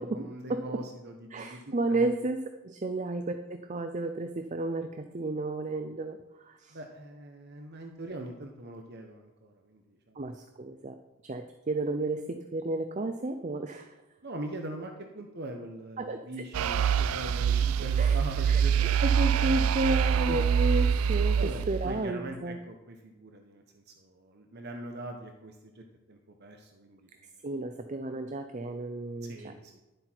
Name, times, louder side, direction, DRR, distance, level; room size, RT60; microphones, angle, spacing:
voice 1, 0.0-2.1 6.7-10.2 14.2-19.0 20.3-20.4 21.3-27.1 29.2-29.8, right 1 dB, 50° right, 3 dB, 1.0 m, -42 dB
voice 2, 1.3-6.8 10.2-10.9 11.2-14.0 16.0-16.4 18.0-18.2 18.5-22.6 27.4-29.5, right 2 dB, 35° right, 7 dB, 0.6 m, -32 dB
sound 1, 16.5-22.0, right 7 dB, 80° right, 0.4 m, -25 dB
11.5 x 7.8 x 4.5 m, 1.1 s
head